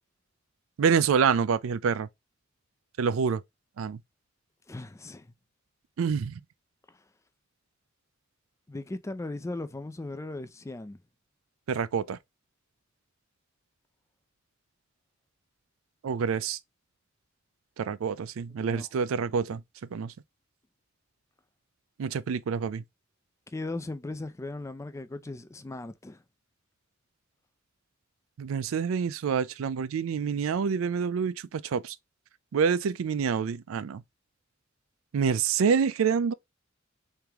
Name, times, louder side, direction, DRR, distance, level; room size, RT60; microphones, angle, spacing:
voice 1, 0.8-2.1 3.0-3.4 3.8-4.0 6.0-6.4 11.7-12.2 16.0-16.6 17.8-19.6 19.9-20.1 22.0-22.8 28.4-32.0 32.5-34.0 35.1-36.3, right 6 dB, 80° right, 0.4 m, -27 dB
voice 2, 4.7-5.3 6.9-7.0 8.7-11.0 18.6-19.2 23.5-26.2, left 2 dB, 15° left, 0.4 m, -38 dB
3.4 x 2.9 x 3.4 m
head